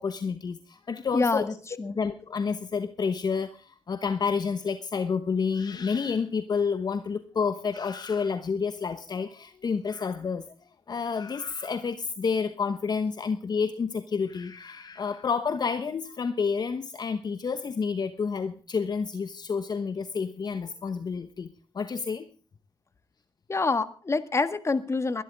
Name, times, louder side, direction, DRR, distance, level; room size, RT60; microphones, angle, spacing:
voice 1, 0.0-1.5 1.8-10.5 10.9-22.3, left 5 dB, 45° left, 10 dB, 1.1 m, -29 dB
voice 2, 1.1-2.0 23.5-25.2, left 3 dB, 30° left, 11 dB, 1.7 m, -27 dB
21.5 x 12.0 x 3.6 m, 0.39 s
cardioid pair, 85°, 10 cm